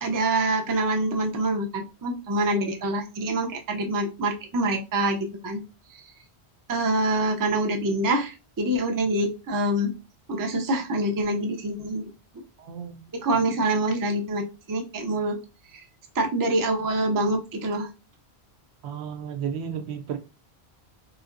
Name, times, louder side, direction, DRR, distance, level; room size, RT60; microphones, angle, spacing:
voice 1, 0.0-5.6 6.7-9.9 10.3-12.0 13.1-14.4 14.7-15.4 16.2-17.9, right 1 dB, 30° right, 0.4 m, -25 dB
voice 2, 12.6-13.0 18.8-20.2, right 8 dB, 80° right, 0.9 m, -33 dB
3.2 x 2.8 x 2.5 m
omnidirectional pair, 1.1 m